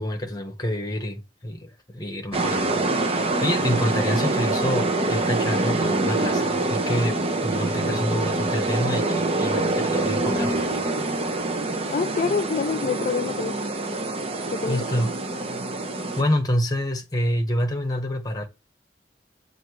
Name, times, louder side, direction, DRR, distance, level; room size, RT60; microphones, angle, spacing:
voice 1, 0.0-2.8 3.1-11.1 14.7-15.1 16.2-18.4, equal, 20° left, 1.2 m, -27 dB
sound 1, 2.3-16.2, right 2 dB, 35° right, 0.8 m, -25 dB
voice 2, 11.9-13.7 14.5-14.8, left 5 dB, 45° left, 0.3 m, -26 dB
7.4 x 2.7 x 4.7 m
head